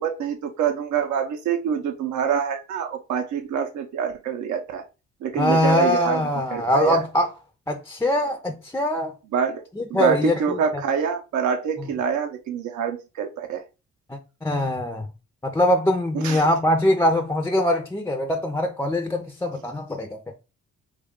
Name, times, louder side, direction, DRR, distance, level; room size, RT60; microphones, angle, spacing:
voice 1, 0.0-4.8 5.2-6.2 6.5-7.0 9.3-9.6 9.9-13.6 16.1-16.4, right 7 dB, 70° right, 0.6 m, -26 dB
voice 2, 5.4-7.3 7.7-9.1 9.8-10.6 14.1-15.1 15.4-20.2, left 1 dB, 10° left, 0.4 m, -22 dB
3.1 x 2.3 x 3.6 m
cardioid pair, 90°, 30 cm